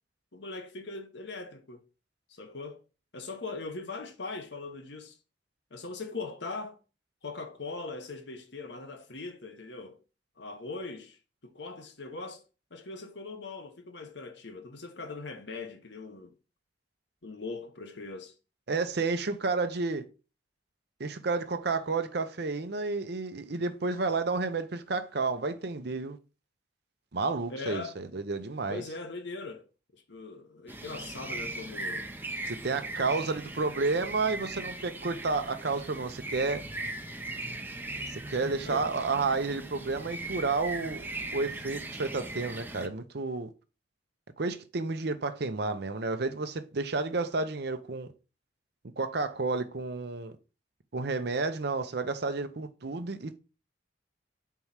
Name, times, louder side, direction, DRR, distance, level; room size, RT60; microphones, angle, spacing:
voice 1, 0.3-1.8 2.3-2.8 3.1-5.2 5.7-6.8 7.2-10.0 10.4-12.4 12.7-16.3 17.2-18.3 27.5-27.9 28.7-29.7 29.9-32.1 38.6-38.9, left 3 dB, 65° left, 1.1 m, -40 dB
voice 2, 18.7-20.0 21.0-26.2 27.1-28.8 32.5-36.6 38.1-43.5 44.4-48.1 49.0-50.3 50.9-53.4, right 3 dB, 60° right, 0.7 m, -31 dB
sound 1, 30.7-42.9, right 2 dB, 10° right, 0.6 m, -39 dB
4.7 x 4.6 x 5.6 m
head